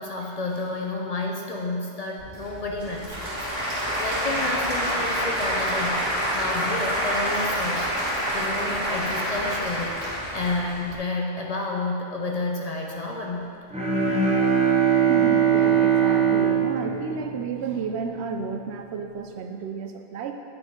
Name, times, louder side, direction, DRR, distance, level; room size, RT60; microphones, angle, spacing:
voice 1, 0.0-3.7 4.0-6.0 6.3-7.8 8.3-10.0 10.3-13.5, left 2 dB, 45° left, 0 dB, 0.6 m, -30 dB
Applause / Crowd, 2.2-11.0, equal, 65° right, 1.8 m, -27 dB
Bowed string instrument, 13.7-18.0, right 7 dB, 5° right, 0.8 m, -21 dB
voice 2, 15.1-20.3, right 5 dB, 85° right, 5 dB, 0.9 m, -31 dB
8.8 x 4.3 x 4.5 m, 2.4 s
omnidirectional pair, 1.1 m